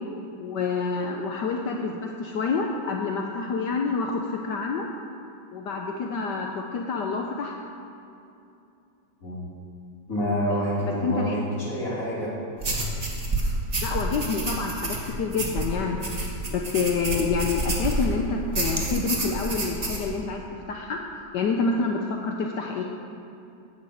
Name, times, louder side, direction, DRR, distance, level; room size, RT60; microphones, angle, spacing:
voice 1, 0.4-4.9 5.5-7.5 10.5-10.6 11.0-11.4 13.8-16.0 16.5-21.0 21.3-22.8, left 4 dB, 70° left, 2 dB, 1.2 m, -28 dB
voice 2, 10.1-12.3, equal, 45° left, -7 dB, 3.2 m, -27 dB
sound 1, 12.6-18.1 18.5-20.1, right 2 dB, 25° right, 1.2 m, -28 dB
10.5 x 6.6 x 7.8 m, 2.7 s
omnidirectional pair, 2.2 m